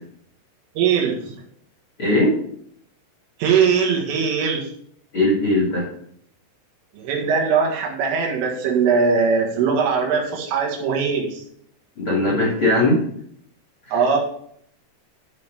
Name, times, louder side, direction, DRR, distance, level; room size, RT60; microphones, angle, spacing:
voice 1, 0.8-1.4 3.4-4.7 6.9-11.4 13.9-14.2, right 6 dB, 80° right, -1 dB, 4.4 m, -20 dB
voice 2, 2.0-2.3 5.1-5.9 12.0-13.0 13.9-14.0, left 1 dB, 40° left, -3 dB, 2.1 m, -19 dB
11.5 x 5.7 x 4.8 m, 0.67 s
omnidirectional pair, 5.8 m